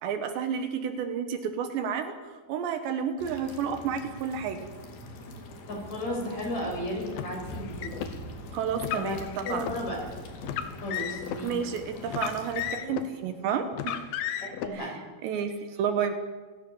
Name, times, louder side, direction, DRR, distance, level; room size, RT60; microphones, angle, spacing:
voice 1, 0.0-4.7 8.5-9.7 11.4-14.1 14.7-16.1, right 7 dB, 70° right, 8 dB, 3.4 m, -31 dB
sound 1, 3.2-12.7, left 1 dB, 55° left, 4.4 m, -43 dB
voice 2, 5.7-8.0 8.9-9.2 9.4-10.1 10.8-11.5 14.4-15.0, left 1 dB, 35° left, 1 dB, 7.1 m, -34 dB
Car, 7.1-8.1 8.8-9.8 10.4-11.4 12.1-13.1 13.7-14.7, left 11 dB, 75° left, 3.6 m, -34 dB
28.5 x 17.5 x 7.2 m, 1.4 s
omnidirectional pair, 5.4 m